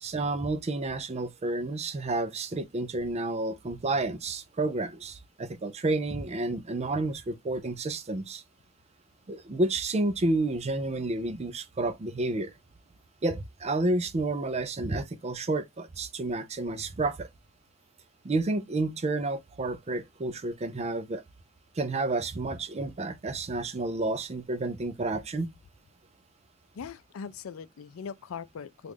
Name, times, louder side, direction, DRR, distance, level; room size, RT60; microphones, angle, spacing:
voice 1, 0.0-8.4 9.3-12.5 13.2-17.3 18.2-21.2 21.8-25.5, right 2 dB, 30° right, 0.5 m, -30 dB
voice 2, 26.7-28.9, left 6 dB, 90° left, 0.4 m, -40 dB
3.1 x 2.4 x 3.3 m
head